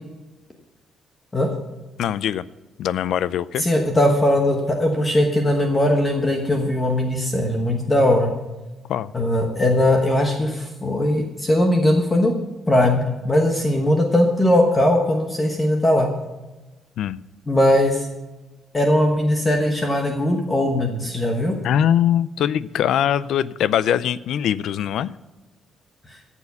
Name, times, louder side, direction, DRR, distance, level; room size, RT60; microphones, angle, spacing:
voice 1, 2.0-2.4 2.8-3.6 8.9-9.1 17.0-17.2 21.6-25.1, left 10 dB, 70° left, 18 dB, 0.4 m, -22 dB
voice 2, 3.6-8.3 9.1-12.3 12.7-16.1 17.5-18.1 18.7-21.5 26.1-26.2, left 1 dB, 15° left, 2 dB, 1.2 m, -19 dB
14.0 x 7.2 x 6.9 m, 1.1 s
cardioid pair, 165°, 0 cm